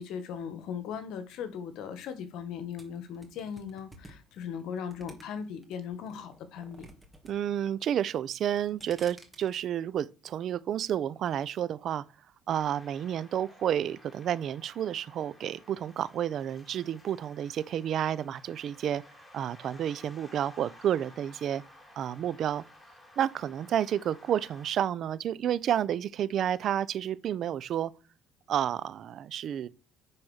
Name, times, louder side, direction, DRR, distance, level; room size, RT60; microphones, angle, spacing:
voice 1, 0.0-6.9, left 7 dB, 75° left, 1.7 m, -38 dB
sound 1, 2.8-5.6 6.1-7.3 7.6-8.1 8.5-9.6, right 1 dB, 10° right, 2.4 m, -52 dB
voice 2, 7.3-12.0 12.5-19.0 19.3-21.6 22.0-22.6 23.2-27.9 28.5-29.7, right 10 dB, 55° right, 0.7 m, -30 dB
sound 2, 12.5-24.7, left 1 dB, 15° left, 4.3 m, -55 dB
9.8 x 4.4 x 6.6 m
cardioid pair, 100°, 0 cm